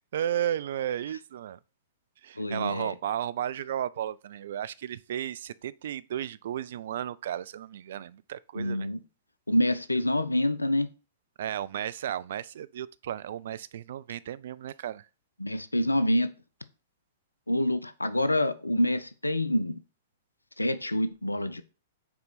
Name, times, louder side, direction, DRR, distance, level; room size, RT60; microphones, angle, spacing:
voice 1, 0.0-1.6 2.2-8.9 11.4-15.0, right 10 dB, 55° right, 0.3 m, -34 dB
voice 2, 2.4-2.9 8.5-9.0 9.5-10.9 15.4-16.3 17.5-19.8 20.6-21.6, left 1 dB, 85° left, 0.6 m, -27 dB
6.1 x 4.5 x 4.1 m
figure-of-eight pair, 105°, 0 cm